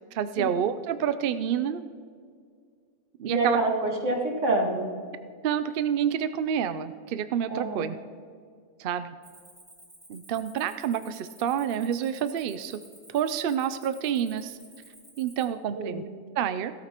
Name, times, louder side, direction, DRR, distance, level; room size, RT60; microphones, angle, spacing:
voice 1, 0.1-1.8 3.2-3.6 5.4-7.9 8.8-9.2 10.1-12.8 13.1-14.6 15.2-16.0 16.4-16.7, right 9 dB, 70° right, 12 dB, 0.5 m, -28 dB
voice 2, 3.2-4.9 7.5-7.9 15.4-16.0, right 2 dB, 55° right, 0 dB, 2.2 m, -27 dB
Cricket, 9.2-15.4, right 1 dB, 10° right, 2.4 m, -53 dB
17.0 x 13.0 x 3.0 m, 2.1 s
omnidirectional pair, 1.5 m